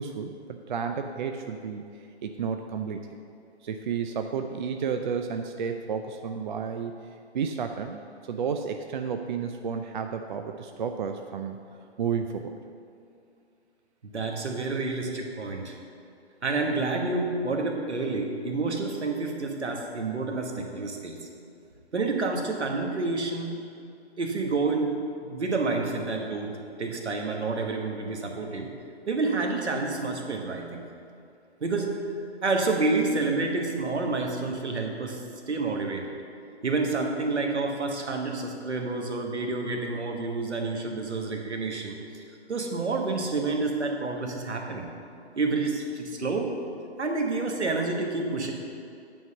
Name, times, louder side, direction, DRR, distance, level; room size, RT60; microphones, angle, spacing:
voice 1, 0.0-3.2 3.6-6.9 7.3-11.6 12.0-12.5, right 6 dB, 45° right, 6 dB, 0.4 m, -32 dB
voice 2, 14.0-15.8 16.4-21.2 21.9-23.6 24.2-26.5 26.8-28.7 29.1-30.8 31.6-32.0 32.4-35.2 35.5-36.1 36.6-44.9 45.3-46.5 47.0-48.5, right 3 dB, 80° right, 2 dB, 1.3 m, -29 dB
9.2 x 3.8 x 6.5 m, 2.5 s
figure-of-eight pair, 135°, 34 cm